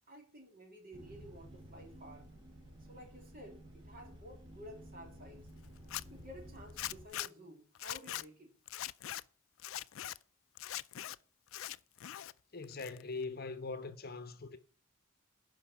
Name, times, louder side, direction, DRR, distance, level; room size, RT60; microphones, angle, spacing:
voice 1, 0.1-2.3 2.9-5.5 6.1-8.6, equal, 45° right, 3.0 m, -53 dB
sound 1, 0.9-7.1, equal, 25° right, 3.5 m, -53 dB
Zipper (clothing), 5.8-6.0 6.8-7.3 7.8-8.2 8.7-9.2 9.6-10.2 10.6-11.2 11.5-12.3 12.6-13.2, left 13 dB, 70° left, 0.4 m, -41 dB
voice 2, 12.5-14.6, left 4 dB, 45° left, 0.9 m, -42 dB
10.5 x 5.4 x 7.2 m
head